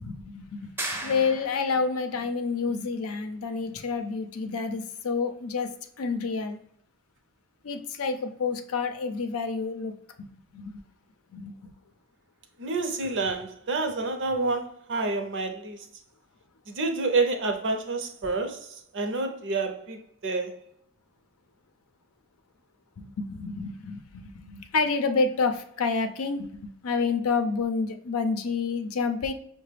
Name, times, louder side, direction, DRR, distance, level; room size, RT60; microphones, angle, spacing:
voice 1, 0.0-5.7 6.0-6.6 7.6-9.9 10.5-10.8 11.3-11.7 23.0-29.3, left 4 dB, 75° left, 0.5 m, -29 dB
sound 1, 0.8-1.9, right 1 dB, 10° right, 0.5 m, -35 dB
voice 2, 12.6-15.8 16.7-20.6, right 3 dB, 60° right, 0.6 m, -28 dB
5.5 x 2.1 x 3.3 m
head